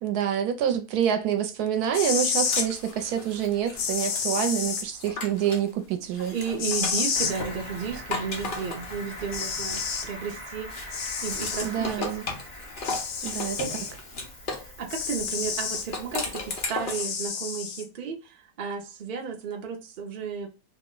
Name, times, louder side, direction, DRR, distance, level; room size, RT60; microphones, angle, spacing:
voice 1, 0.0-6.3 11.6-12.2 13.2-13.9, right 9 dB, 75° right, 1.1 m, -27 dB
sound 1, 1.8-2.7 3.8-4.8 6.6-7.3 8.8-8.9 9.3-10.1 10.9-11.7 12.8-13.9 14.9-15.9 16.9-17.8, left 6 dB, 85° left, 1.2 m, -29 dB
sound 2, 2.0-5.7 6.1-10.3 10.7-14.7 15.7-17.1, left 3 dB, 50° left, 0.6 m, -37 dB
voice 2, 6.3-10.7 11.2-12.1 14.8-20.5, right 6 dB, 50° right, 0.6 m, -33 dB
Cricket, 7.1-16.7, left 1 dB, 25° left, 0.9 m, -42 dB
2.8 x 2.1 x 3.7 m
omnidirectional pair, 1.7 m